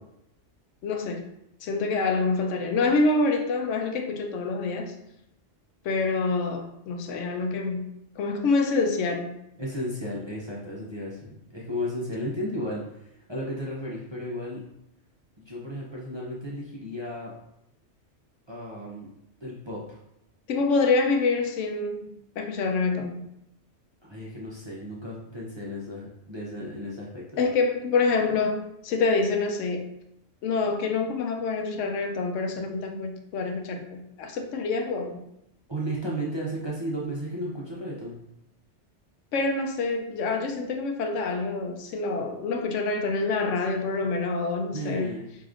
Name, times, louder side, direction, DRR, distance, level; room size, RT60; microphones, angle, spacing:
voice 1, 0.8-1.2 1.6-4.9 5.8-9.4 20.5-22.1 22.4-23.3 27.4-29.9 30.4-35.3 39.3-45.1, left 3 dB, 90° left, 4 dB, 0.9 m, -26 dB
voice 2, 9.6-14.6 15.4-17.3 18.5-19.1 19.4-20.0 24.0-27.4 35.7-38.2 44.7-45.3, equal, 35° right, -6 dB, 0.5 m, -34 dB
4.8 x 2.8 x 2.5 m, 0.80 s
omnidirectional pair, 1.2 m